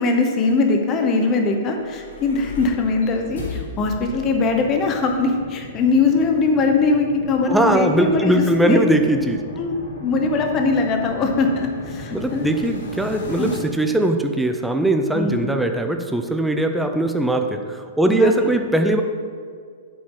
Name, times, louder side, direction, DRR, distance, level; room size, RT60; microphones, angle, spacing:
voice 1, 0.0-8.8 9.6-9.7 10.0-12.5 13.4-13.5 15.1-15.5 18.0-18.6, left 3 dB, 20° left, 4 dB, 0.8 m, -21 dB
sound 1, 1.6-13.6, left 2 dB, 80° left, 2.2 m, -36 dB
voice 2, 7.5-9.4 12.1-19.0, right 1 dB, ahead, 5 dB, 0.4 m, -20 dB
8.4 x 7.8 x 3.7 m, 2.1 s
hypercardioid pair, 175°, 0 cm